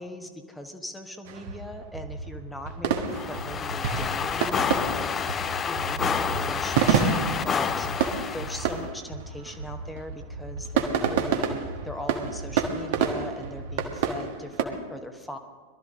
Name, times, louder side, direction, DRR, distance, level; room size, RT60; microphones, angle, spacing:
voice 1, 0.0-7.2 7.4-7.9 8.3-15.4, left 1 dB, 5° left, 5 dB, 1.2 m, -39 dB
sound 1, 1.2-14.6, right 6 dB, 50° right, 1.4 m, -29 dB
sound 2, 3.1-8.8, left 7 dB, 25° left, 0.6 m, -29 dB
22.0 x 13.0 x 3.7 m, 1.5 s
figure-of-eight pair, 90°, 0 cm